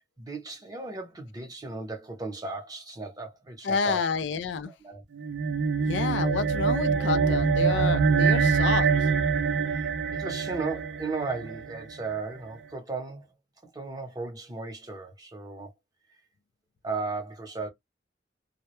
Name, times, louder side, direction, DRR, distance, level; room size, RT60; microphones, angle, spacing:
voice 1, 0.2-4.0 4.8-5.0 9.6-13.3 13.7-15.7 16.8-17.7, right 3 dB, 20° right, 0.7 m, -36 dB
voice 2, 3.6-4.7 5.9-9.1, left 5 dB, 80° left, 0.4 m, -29 dB
sound 1, 5.2-11.8, right 5 dB, 70° right, 0.4 m, -25 dB
2.2 x 2.0 x 2.9 m
head